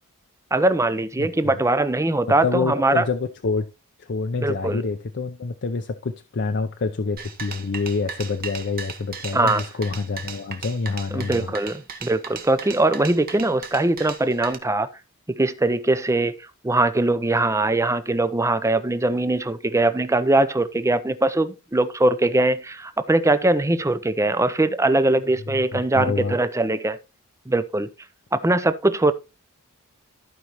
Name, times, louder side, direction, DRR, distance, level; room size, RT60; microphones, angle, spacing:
voice 1, 0.5-3.0 4.4-4.8 9.3-9.6 11.1-14.9 15.3-16.3 16.6-27.0 27.5-27.9 28.3-29.1, right 2 dB, 15° right, 0.6 m, -21 dB
voice 2, 1.2-1.6 2.3-3.7 4.0-11.5 25.5-26.4, left 4 dB, 55° left, 0.6 m, -27 dB
sound 1, 7.2-14.5, right 6 dB, 45° right, 1.3 m, -36 dB
14.5 x 5.2 x 3.0 m
head